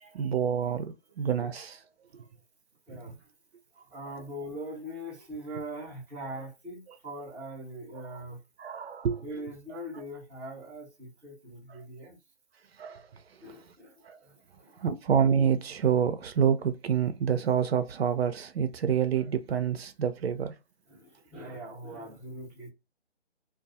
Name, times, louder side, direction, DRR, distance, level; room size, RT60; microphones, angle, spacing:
voice 1, 0.1-1.8 2.9-3.0 8.6-9.2 12.8-13.1 14.0-14.2 14.8-20.5, right 7 dB, 65° right, 0.5 m, -27 dB
voice 2, 2.9-3.3 3.9-8.4 9.2-12.2 13.4-14.8 20.9-22.7, right 1 dB, 5° right, 0.8 m, -42 dB
2.3 x 2.3 x 2.6 m
figure-of-eight pair, 145°, 33 cm